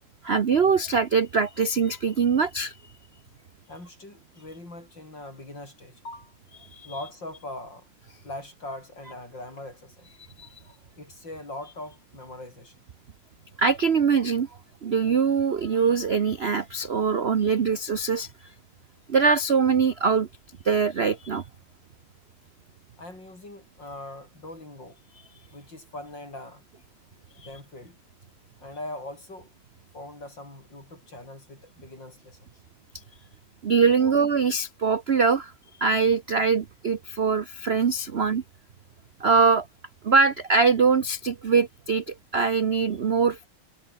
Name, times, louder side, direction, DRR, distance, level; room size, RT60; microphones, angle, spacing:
voice 1, 0.2-2.8 6.7-6.9 10.4-10.6 13.6-14.5 14.8-18.5 19.1-20.3 20.6-21.4 27.4-27.5 33.6-35.5 35.8-38.4 39.2-39.7 40.0-43.4, right 5 dB, 60° right, 0.6 m, -23 dB
voice 2, 3.7-6.3 6.8-7.9 8.2-10.1 10.6-12.8 23.0-25.0 25.5-26.6 27.4-28.0 28.6-29.5 29.9-32.5 34.0-34.1, left 2 dB, 55° left, 8.5 m, -41 dB
omnidirectional pair, 2.3 m